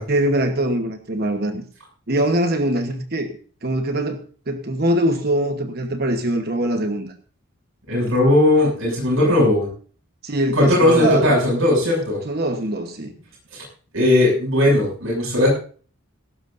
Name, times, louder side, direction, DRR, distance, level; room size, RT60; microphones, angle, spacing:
voice 1, 0.1-1.6 2.1-4.2 4.5-7.1 10.2-11.3 12.2-13.1, right 1 dB, 50° right, 6 dB, 1.2 m, -23 dB
voice 2, 7.9-9.7 10.5-12.2 13.5-13.6 13.9-15.5, left 1 dB, 75° right, -2 dB, 7.0 m, -17 dB
18.0 x 16.0 x 2.6 m, 0.41 s
head